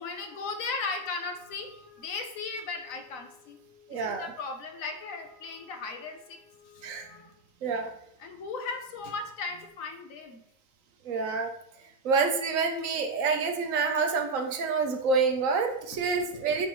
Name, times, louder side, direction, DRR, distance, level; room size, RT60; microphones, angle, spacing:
voice 1, 0.0-7.3 8.2-10.4, left 4 dB, 85° left, 6 dB, 1.2 m, -37 dB
voice 2, 3.9-4.3 6.8-7.1 7.6-7.9 11.0-11.5 12.0-16.7, right 4 dB, 80° right, 5 dB, 1.2 m, -27 dB
8.5 x 3.6 x 3.1 m, 0.77 s
omnidirectional pair, 1.4 m